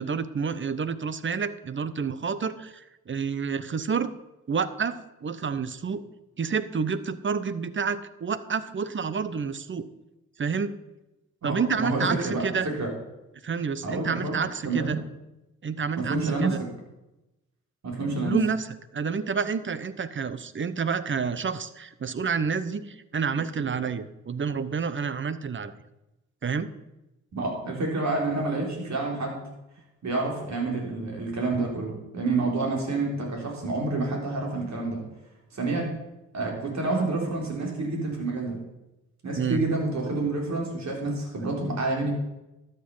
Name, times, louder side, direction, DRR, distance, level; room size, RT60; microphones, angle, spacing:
voice 1, 0.0-4.1 4.5-6.0 6.4-9.9 10.4-10.7 11.4-12.7 13.4-15.0 15.6-16.6 18.2-18.7 18.9-25.7 26.4-26.7 39.4-39.6 41.6-41.7, right 5 dB, 40° right, 14 dB, 0.8 m, -29 dB
voice 2, 11.4-12.9 13.8-15.0 15.9-16.6 17.8-18.4 27.3-29.5 30.0-35.0 35.5-35.9 36.3-38.6 39.2-42.1, right 3 dB, 55° right, 0 dB, 3.9 m, -28 dB
12.5 x 6.7 x 5.5 m, 0.97 s
supercardioid pair, 55°, 32 cm